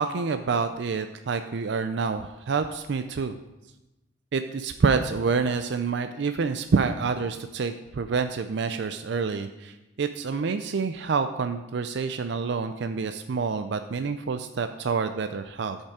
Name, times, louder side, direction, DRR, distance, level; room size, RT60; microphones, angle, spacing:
voice 1, 0.0-3.4 4.3-15.8, right 5 dB, 60° right, 8 dB, 0.4 m, -27 dB
10.5 x 5.4 x 4.9 m, 0.99 s
head